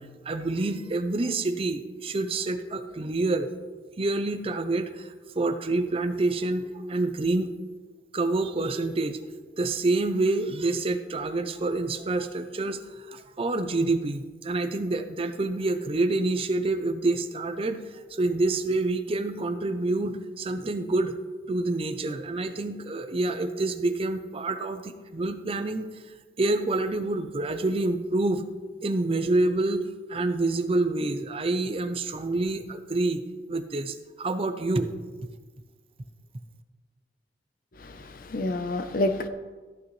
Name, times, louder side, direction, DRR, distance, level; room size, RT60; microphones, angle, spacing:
voice 1, 0.0-3.5 4.0-7.5 8.1-9.2 9.6-17.8 18.1-21.1 21.5-25.9 26.4-28.4 28.8-34.9, right 2 dB, 35° right, 9 dB, 0.5 m, -27 dB
voice 2, 37.8-39.3, left 1 dB, 55° left, 9 dB, 0.7 m, -28 dB
13.5 x 8.7 x 3.2 m, 1.3 s
head